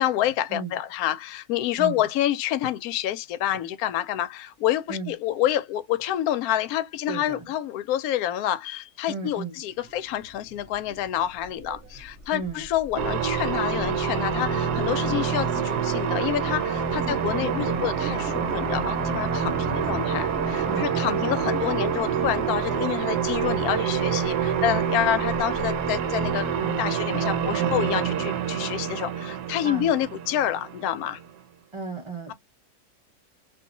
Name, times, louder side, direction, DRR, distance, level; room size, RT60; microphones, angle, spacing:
voice 1, 0.0-31.2, left 12 dB, 70° left, 1.0 m, -28 dB
voice 2, 7.1-7.5 9.1-9.6 12.3-12.6 16.9-17.2 19.4-19.9 20.7-20.9 29.6-29.9 31.7-32.3, right 4 dB, 20° right, 1.1 m, -35 dB
sound 1, 9.7-27.5, right 4 dB, 60° right, 0.8 m, -40 dB
sound 2, 13.0-31.3, right 7 dB, 80° right, 1.2 m, -27 dB
2.7 x 2.7 x 2.6 m
omnidirectional pair, 1.7 m